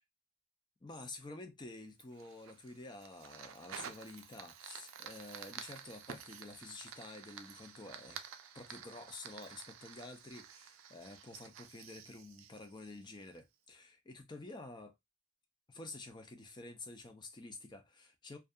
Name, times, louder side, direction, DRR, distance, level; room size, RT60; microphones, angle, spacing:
voice 1, 0.8-8.2 8.5-14.9 15.7-18.4, left 2 dB, 20° left, 0.4 m, -50 dB
Fire, 2.0-13.4, right 8 dB, 80° right, 0.4 m, -51 dB
2.6 x 2.3 x 2.2 m
head